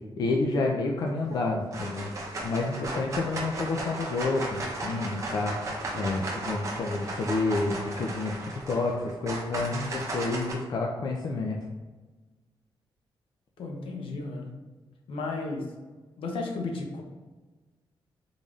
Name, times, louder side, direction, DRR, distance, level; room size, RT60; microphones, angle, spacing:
voice 1, 0.2-2.1 2.4-5.7 5.9-11.6, left 3 dB, 50° left, 0 dB, 0.4 m, -29 dB
sound 1, 1.0-1.4 1.7-10.5, right 2 dB, 35° right, 0.7 m, -35 dB
voice 2, 13.6-14.5 15.1-15.7 16.2-17.0, left 3 dB, 75° left, 1 dB, 0.8 m, -33 dB
3.9 x 3.4 x 2.4 m, 1.3 s
wide cardioid pair, 150°, 9 cm